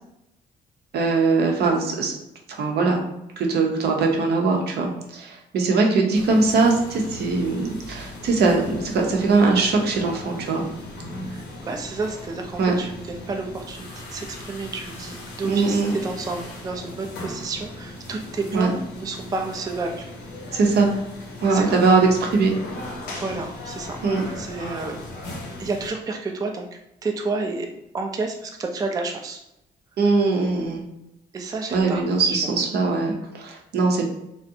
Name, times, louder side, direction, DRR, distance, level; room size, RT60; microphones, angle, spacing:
voice 1, 0.9-2.1 2.5-3.0 3.4-10.6 12.6-12.8 15.4-16.0 18.5-18.7 20.5-20.9 21.4-22.5 24.0-24.2 30.0-30.8 31.7-34.1, right 3 dB, 70° right, 1 dB, 0.6 m, -21 dB
sound 1, 6.1-25.9, left 1 dB, 85° left, 0.7 m, -38 dB
voice 2, 11.3-20.0 21.5-21.8 23.1-24.0 24.4-25.0 25.6-26.7 27.0-27.7 27.9-29.4 31.3-32.4, right 3 dB, 20° right, 3 dB, 0.3 m, -30 dB
2.4 x 2.1 x 2.6 m, 0.85 s
cardioid pair, 75°, 18 cm